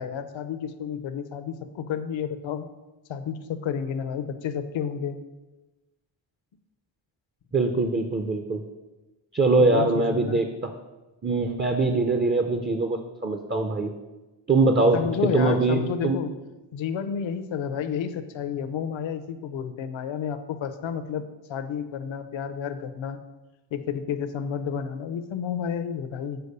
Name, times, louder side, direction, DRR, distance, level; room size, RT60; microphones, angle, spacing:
voice 1, 0.0-2.7 3.1-5.2 9.6-10.4 14.9-16.3 16.7-23.2 23.7-26.4, left 7 dB, 70° left, 10 dB, 0.8 m, -31 dB
voice 2, 7.5-8.6 9.3-10.7 11.2-13.9 14.5-16.2, right 3 dB, 20° right, 6 dB, 0.5 m, -23 dB
7.0 x 4.5 x 6.6 m, 1.1 s
wide cardioid pair, 115°, 47 cm